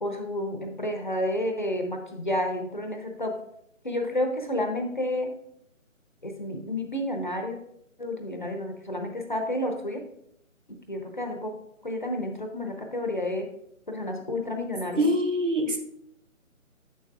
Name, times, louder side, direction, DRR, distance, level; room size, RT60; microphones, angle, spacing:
voice 1, 0.0-3.4 3.8-5.3 6.2-7.6 8.0-10.0 10.9-11.6 11.8-13.5 13.9-15.1, left 1 dB, 35° left, 4 dB, 0.7 m, -30 dB
voice 2, 15.0-15.8, equal, 65° right, 5 dB, 1.2 m, -24 dB
8.5 x 6.7 x 2.4 m, 0.73 s
figure-of-eight pair, 155°, 41 cm